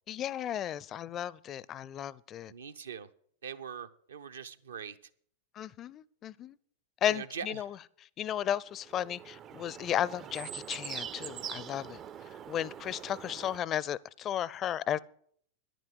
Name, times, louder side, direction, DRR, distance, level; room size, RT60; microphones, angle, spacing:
voice 1, 0.1-2.5 5.6-6.5 7.0-7.8 8.2-12.0 12.5-15.0, left 10 dB, 30° left, 0.4 m, -34 dB
voice 2, 2.5-3.1 3.4-5.0 7.1-7.7, right 7 dB, 70° right, 0.7 m, -42 dB
sound 1, 8.8-13.6, right 9 dB, 30° right, 0.4 m, -43 dB
10.5 x 9.2 x 7.8 m
figure-of-eight pair, 90°, 0 cm